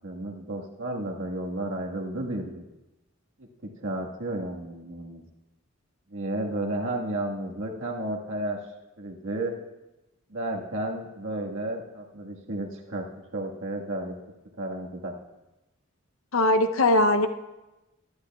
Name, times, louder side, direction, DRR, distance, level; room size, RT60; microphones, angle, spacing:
voice 1, 0.0-2.6 3.8-5.2 6.1-8.6 9.0-9.5 10.3-13.0 13.3-14.1 14.6-15.1, right 1 dB, 65° right, -1 dB, 1.6 m, -32 dB
voice 2, 16.3-17.3, left 1 dB, 70° left, 8 dB, 0.7 m, -20 dB
22.5 x 11.5 x 2.3 m, 1.0 s
head